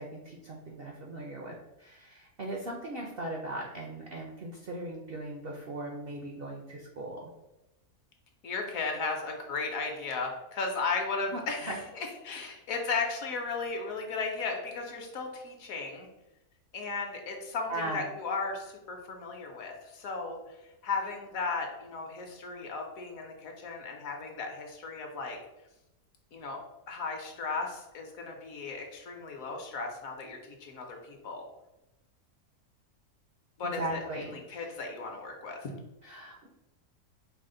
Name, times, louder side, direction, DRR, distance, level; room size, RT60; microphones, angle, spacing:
voice 1, 0.0-7.3 11.3-11.8 17.7-18.1 21.0-21.1 33.6-34.8 36.0-36.5, right 1 dB, 60° right, -1 dB, 0.6 m, -39 dB
voice 2, 8.4-16.1 16.7-20.6 20.8-25.4 26.3-26.6 26.9-31.5 33.6-34.0 34.5-35.8, left 4 dB, 65° left, 2 dB, 1.1 m, -35 dB
4.9 x 2.0 x 3.7 m, 0.94 s
omnidirectional pair, 1.6 m